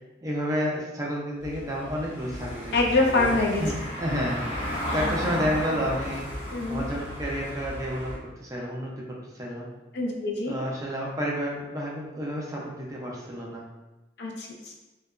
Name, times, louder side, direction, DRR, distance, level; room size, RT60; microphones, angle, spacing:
voice 1, 0.2-2.8 3.1-6.3 6.7-8.1 8.4-9.7 10.5-13.6, equal, 20° right, -3 dB, 0.4 m, -31 dB
Car passing by / Engine, 1.4-8.2, equal, 35° left, 0.9 m, -34 dB
voice 2, 2.7-3.6 4.9-5.0 6.5-6.9 9.9-10.6 14.2-14.7, left 2 dB, 65° left, 0 dB, 0.4 m, -25 dB
2.8 x 2.2 x 2.3 m, 1.1 s
head